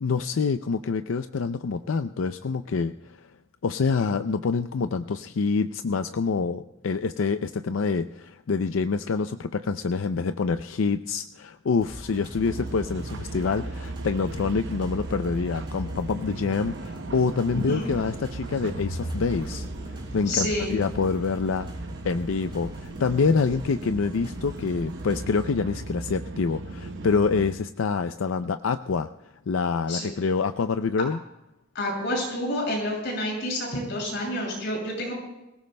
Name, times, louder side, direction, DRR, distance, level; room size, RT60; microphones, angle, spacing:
voice 1, 0.0-2.9 3.6-21.7 22.0-29.1 29.5-31.2, left 4 dB, 85° left, 10 dB, 0.5 m, -26 dB
sound 1, 11.8-25.5, equal, 25° right, 4.9 m, -42 dB
sound 2, 12.5-27.5, right 2 dB, 65° right, 0.8 m, -37 dB
voice 2, 17.5-17.9 20.3-20.7 29.9-30.1 31.7-35.1, left 1 dB, 60° left, -1 dB, 6.6 m, -28 dB
sound 3, 18.4-20.3, equal, 40° left, 1.1 m, -37 dB
25.0 x 17.5 x 2.2 m, 0.92 s
head